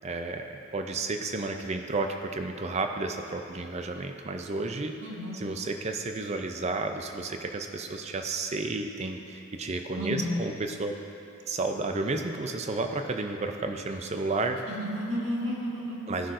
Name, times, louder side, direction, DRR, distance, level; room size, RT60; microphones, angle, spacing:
voice 1, 0.0-5.0 5.3-10.9 11.5-14.6 16.1-16.3, right 3 dB, 30° right, 5 dB, 0.4 m, -32 dB
voice 2, 5.0-5.3 9.9-10.4 14.7-16.1, left 1 dB, 60° right, -7 dB, 1.7 m, -32 dB
14.5 x 5.7 x 2.5 m, 2.8 s
head